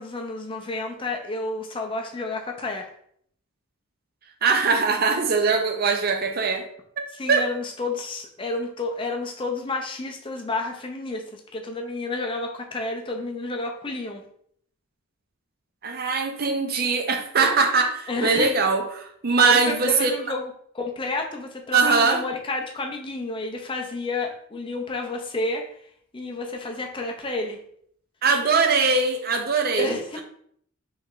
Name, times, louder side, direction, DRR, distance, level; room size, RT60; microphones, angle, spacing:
voice 1, 0.0-2.9 7.1-14.2 18.1-18.5 19.4-20.5 20.7-25.6 26.1-27.6 29.8-30.2, left 3 dB, 25° left, 2 dB, 0.5 m, -30 dB
voice 2, 4.4-6.7 7.0-7.5 15.8-20.1 21.7-22.2 28.2-29.9, right 4 dB, 45° right, 4 dB, 0.6 m, -21 dB
3.4 x 3.1 x 3.7 m, 0.65 s
head